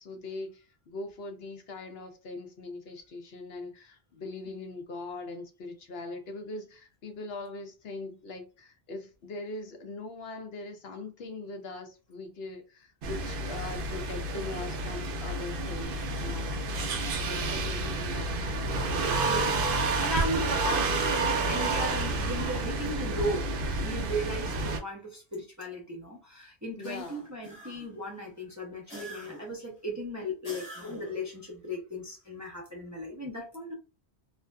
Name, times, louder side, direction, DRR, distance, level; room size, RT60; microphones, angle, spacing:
voice 1, 0.0-16.7 17.2-18.7 26.8-27.3, left 2 dB, 70° left, 0.8 m, -41 dB
sound 1, 13.0-24.8, right 2 dB, 60° right, 0.7 m, -30 dB
voice 2, 19.3-23.5 23.8-33.7, equal, 20° right, 0.6 m, -36 dB
sound 2, 26.8-28.0 28.9-29.6 30.4-31.3, equal, 25° left, 1.0 m, -45 dB
2.5 x 2.3 x 2.2 m
omnidirectional pair, 1.1 m